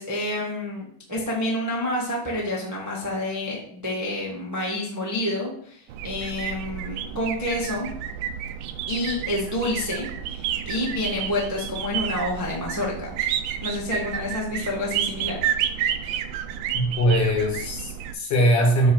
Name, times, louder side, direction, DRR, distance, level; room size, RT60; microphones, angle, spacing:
voice 1, 0.0-7.9 8.9-13.1 13.6-15.4, left 1 dB, 20° right, -4 dB, 0.5 m, -28 dB
sound 1, 5.9-18.2, right 9 dB, 80° right, 2.3 m, -30 dB
voice 2, 16.7-18.9, equal, 50° left, 0 dB, 2.3 m, -21 dB
9.1 x 3.1 x 6.4 m, 0.63 s
omnidirectional pair, 4.0 m